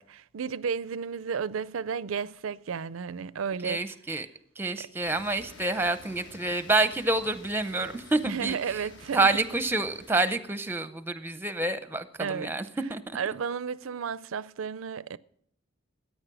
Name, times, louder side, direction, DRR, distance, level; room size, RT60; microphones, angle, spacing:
voice 1, 0.0-3.8 4.8-4.9 8.3-9.4 12.2-12.6 13.1-15.2, right 6 dB, 90° right, 0.5 m, -33 dB
voice 2, 3.6-4.3 4.6-8.6 9.1-12.6 12.9-13.2, right 2 dB, 10° right, 0.6 m, -28 dB
sound 1, 5.0-10.4, left 2 dB, 65° left, 1.4 m, -50 dB
14.0 x 9.4 x 6.1 m
head